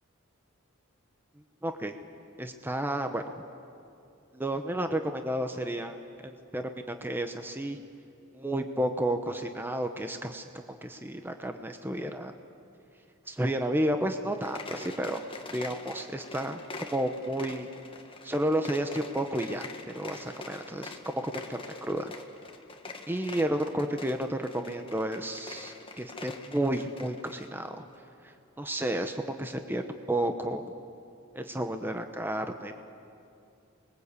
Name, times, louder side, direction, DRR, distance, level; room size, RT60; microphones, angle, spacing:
voice 1, 1.6-1.9 2.4-3.2 4.3-6.0 6.2-7.8 8.3-10.5 10.8-12.3 13.3-15.2 15.5-17.7 18.2-22.1 23.1-27.8 28.2-30.6 31.3-32.7, right 1 dB, 10° right, 6 dB, 0.9 m, -31 dB
sound 1, 14.3-27.5, left 3 dB, 25° left, 1.6 m, -45 dB
29.5 x 21.5 x 8.3 m, 2.7 s
head